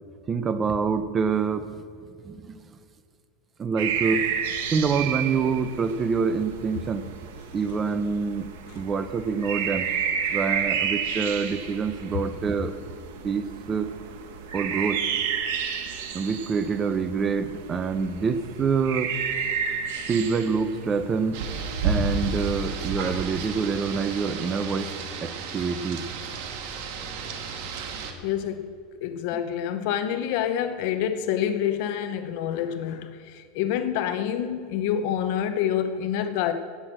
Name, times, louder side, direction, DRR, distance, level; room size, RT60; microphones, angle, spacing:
voice 1, 0.3-1.7 2.2-2.5 3.6-4.3 4.7-7.1 7.5-9.9 10.3-12.7 13.2-13.9 14.5-15.0 16.1-19.1 20.1-21.4 21.8-24.9 25.2-26.0, right 5 dB, 20° right, 11 dB, 0.6 m, -26 dB
sound 1, 3.8-22.6, right 7 dB, 80° right, 1.5 m, -32 dB
Rain, 21.3-28.1, right 4 dB, 60° right, 1.6 m, -31 dB
voice 2, 28.2-28.7 29.0-36.5, left 9 dB, 55° left, 9 dB, 0.7 m, -27 dB
17.5 x 6.1 x 7.6 m, 2.3 s
supercardioid pair, 165°, 0 cm